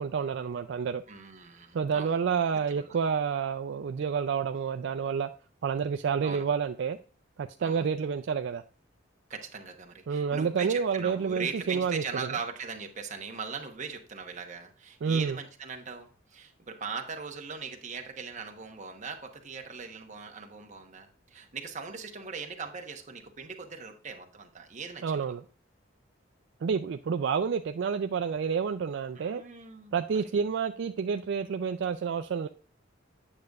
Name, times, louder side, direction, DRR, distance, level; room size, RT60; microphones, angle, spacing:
voice 1, 0.0-1.0 1.7-5.3 5.6-7.0 7.4-8.6 10.1-12.3 15.0-15.4 25.0-25.4 26.6-29.4 29.9-32.5, right 6 dB, 65° right, 0.3 m, -29 dB
voice 2, 1.1-2.2 2.7-3.0 6.2-6.5 7.6-7.9 9.3-25.3 29.1-30.3, right 5 dB, 40° right, 1.0 m, -40 dB
8.7 x 6.5 x 2.4 m
head